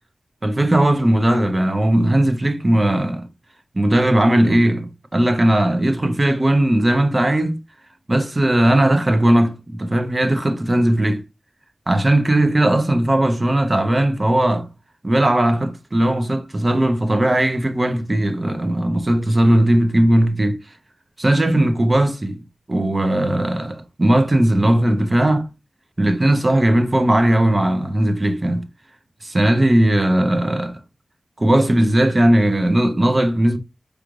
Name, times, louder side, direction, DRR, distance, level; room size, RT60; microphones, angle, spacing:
voice 1, 0.4-3.3 3.7-7.6 8.1-11.2 11.9-14.7 15.0-20.6 21.2-22.4 22.7-25.5 26.0-28.7 29.2-30.7 31.4-33.6, right 1 dB, 30° right, 0.7 m, -17 dB
4.9 x 2.5 x 3.1 m
wide cardioid pair, 70°, 0 cm